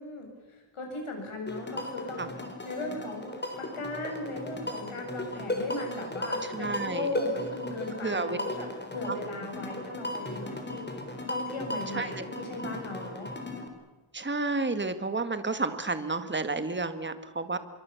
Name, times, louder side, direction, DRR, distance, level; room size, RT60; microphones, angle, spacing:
voice 1, 0.0-2.3 2.6-3.3 3.6-8.7 8.9-10.9 11.3-13.3, left 2 dB, 85° left, 2 dB, 7.7 m, -37 dB
sound 1, 1.5-13.7, left 1 dB, 20° left, 3.8 m, -36 dB
voice 2, 6.4-7.1 8.0-8.4 11.9-12.2 14.1-17.6, right 3 dB, 20° right, 11 dB, 1.6 m, -31 dB
25.0 x 23.0 x 7.0 m, 1.1 s
wide cardioid pair, 140°, 49 cm